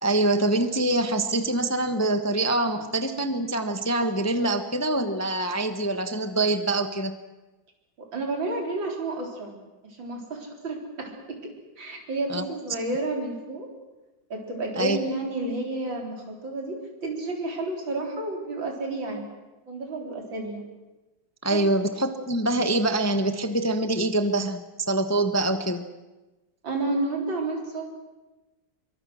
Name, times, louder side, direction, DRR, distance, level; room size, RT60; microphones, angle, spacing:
voice 1, 0.0-7.2 12.3-12.4 14.8-15.0 21.4-25.8, right 2 dB, 10° left, 8 dB, 0.8 m, -25 dB
voice 2, 8.0-11.5 11.8-13.7 14.3-19.3 19.7-20.6 21.5-21.7 26.6-27.9, right 2 dB, 80° right, 1 dB, 4.7 m, -31 dB
24.5 x 23.5 x 6.4 m, 1.1 s
omnidirectional pair, 2.0 m